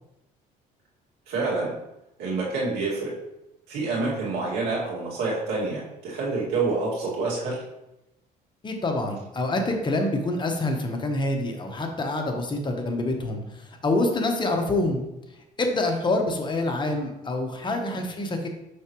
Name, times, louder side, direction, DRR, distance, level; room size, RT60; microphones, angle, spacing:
voice 1, 1.3-1.7 2.2-3.1 3.7-7.6 17.7-18.0, right 3 dB, 90° right, -4 dB, 2.2 m, -27 dB
voice 2, 8.6-15.0 15.6-18.5, left 2 dB, 25° left, 3 dB, 1.0 m, -26 dB
6.3 x 5.8 x 3.1 m, 0.91 s
cardioid pair, 110°, 17 cm